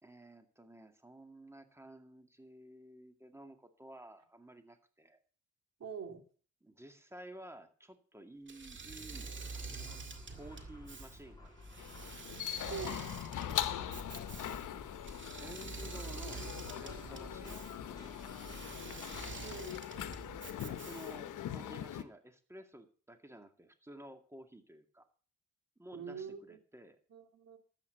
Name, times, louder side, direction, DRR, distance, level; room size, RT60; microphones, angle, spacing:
voice 1, 0.0-5.2 6.6-11.9 13.4-14.6 15.4-18.1 18.4-18.5 20.6-25.1 25.8-27.0, right 1 dB, 10° right, 7 dB, 2.1 m, -53 dB
voice 2, 5.8-6.2 12.7-13.1 19.4-19.8 25.9-26.6 27.1-27.6, right 6 dB, 55° right, 6 dB, 2.9 m, -44 dB
Engine / Mechanisms, 8.5-21.4, right 4 dB, 40° right, 2.0 m, -47 dB
sound 1, 9.1-19.8, left 2 dB, 15° left, 6.6 m, -53 dB
sound 2, 11.8-22.0, left 11 dB, 80° left, 1.0 m, -41 dB
12.5 x 8.6 x 6.9 m, 0.41 s
cardioid pair, 80°, 30 cm